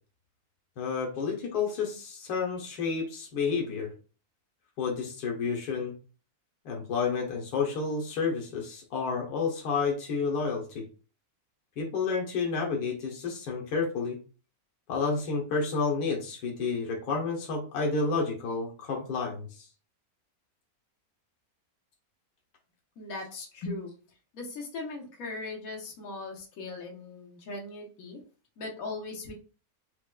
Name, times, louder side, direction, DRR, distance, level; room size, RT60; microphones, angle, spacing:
voice 1, 0.8-3.9 4.8-5.9 6.6-10.8 11.8-14.2 14.9-19.6, left 4 dB, 90° left, -1 dB, 1.3 m, -30 dB
voice 2, 23.0-23.9 24.3-28.2 28.6-29.3, left 3 dB, 70° left, 0 dB, 1.3 m, -39 dB
4.5 x 2.1 x 2.2 m, 0.36 s
omnidirectional pair, 1.6 m